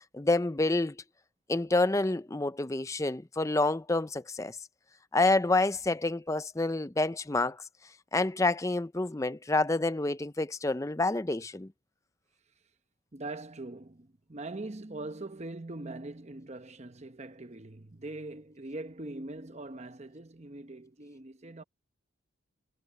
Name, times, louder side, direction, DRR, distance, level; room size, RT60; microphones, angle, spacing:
voice 1, 0.1-1.0 1.5-4.6 5.1-7.6 8.1-11.7, left 2 dB, 15° left, 0.5 m, -28 dB
voice 2, 13.1-21.6, right 2 dB, 35° right, 0.9 m, -42 dB
head